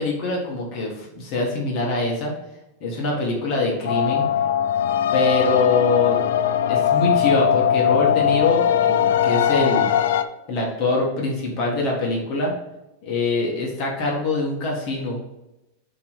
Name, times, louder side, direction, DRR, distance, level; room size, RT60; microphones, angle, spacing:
voice 1, 0.0-2.3 2.8-4.3 5.1-6.3 6.7-9.9 10.5-12.5 13.0-15.2, left 2 dB, 30° left, -2 dB, 1.5 m, -24 dB
sound 1, 3.9-10.2, left 9 dB, 80° left, 0.5 m, -20 dB
8.0 x 3.1 x 4.9 m, 0.93 s
supercardioid pair, 180°, 0 cm